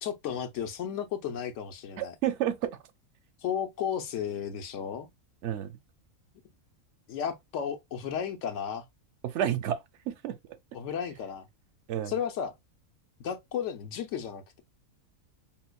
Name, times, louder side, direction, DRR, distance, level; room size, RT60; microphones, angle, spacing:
voice 1, 0.0-2.1 3.4-5.1 7.1-8.9 10.7-11.5 12.1-12.5 13.2-14.6, left 8 dB, 65° left, 1.0 m, -34 dB
voice 2, 2.0-2.8 5.4-5.7 9.2-9.8 10.1-10.4 11.9-12.1, right 10 dB, 65° right, 0.8 m, -30 dB
5.6 x 2.0 x 2.2 m
omnidirectional pair, 1.5 m